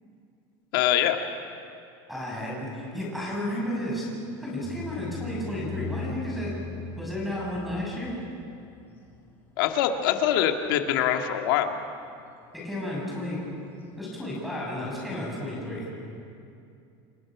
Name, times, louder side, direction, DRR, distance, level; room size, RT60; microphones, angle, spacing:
voice 1, 0.7-1.2 9.6-11.7, left 10 dB, 65° left, 4 dB, 2.0 m, -24 dB
voice 2, 2.1-4.1 4.4-6.5 7.0-8.1 12.6-13.4 14.0-15.9, left 1 dB, ahead, -4 dB, 6.8 m, -32 dB
sound 1, 4.6-11.4 12.1-12.5 12.8-12.9 13.3-14.7, left 4 dB, 20° left, 3.3 m, -40 dB
30.0 x 23.0 x 6.1 m, 2.5 s
cardioid pair, 175°, 12 cm